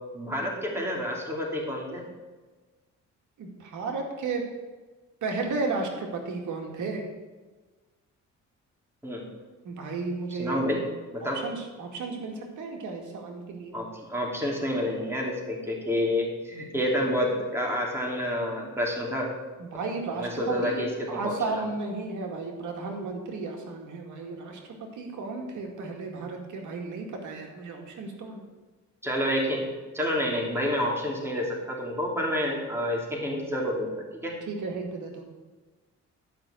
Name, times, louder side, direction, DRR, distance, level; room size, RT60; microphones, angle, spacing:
voice 1, 0.1-2.0 9.0-9.2 10.4-10.8 11.1-11.4 13.7-19.3 20.1-21.6 29.0-29.7 29.9-34.4, equal, 10° right, -2 dB, 3.1 m, -29 dB
voice 2, 3.4-4.5 5.2-7.0 9.6-10.7 11.2-13.8 19.6-24.6 24.9-28.4 34.5-35.2, right 3 dB, 80° right, 1 dB, 2.1 m, -33 dB
12.5 x 5.8 x 7.7 m, 1.3 s
cardioid pair, 110°, 30 cm